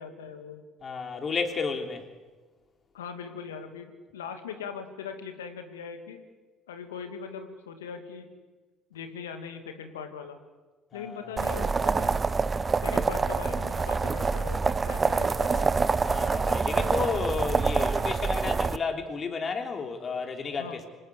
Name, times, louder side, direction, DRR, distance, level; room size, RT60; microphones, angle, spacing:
voice 1, 0.0-0.6 2.9-6.2 6.7-8.3 8.9-10.4 10.9-12.1 12.8-15.9 20.6-20.8, left 6 dB, 80° left, 2.3 m, -40 dB
voice 2, 0.8-2.1 10.9-11.3 16.0-20.9, left 5 dB, 40° left, 3.4 m, -32 dB
sound 1, 11.4-18.8, right 4 dB, 30° right, 0.9 m, -26 dB
26.0 x 19.5 x 8.3 m
figure-of-eight pair, 55°, 0 cm